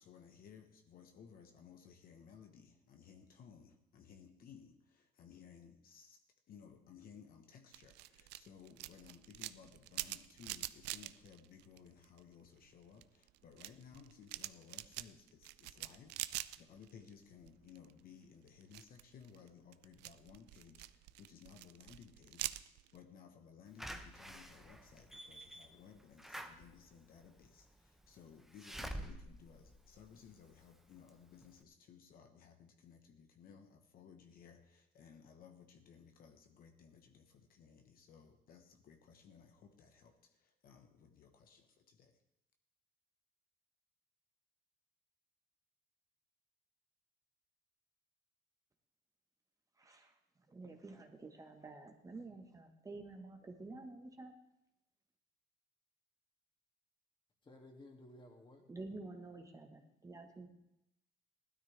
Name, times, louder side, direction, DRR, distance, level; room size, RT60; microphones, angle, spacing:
voice 1, 0.0-6.2 6.5-22.6 22.9-42.2, left 7 dB, 60° left, 5 dB, 1.2 m, -59 dB
sound 1, 7.7-12.3 12.7-17.1 17.4-18.0 18.5-23.0, right 17 dB, 85° right, 0.4 m, -46 dB
Slam / Alarm, 23.8-30.6 31.1-31.2 31.4-31.5, right 1 dB, ahead, 0.9 m, -49 dB
voice 2, 49.8-50.2 50.5-54.3 58.7-60.5, right 3 dB, 20° right, 4 dB, 1.3 m, -50 dB
voice 3, 57.4-58.6, left 1 dB, 30° left, 2 dB, 2.4 m, -56 dB
16.5 x 12.5 x 3.4 m, 0.83 s
cardioid pair, 110°, 17 cm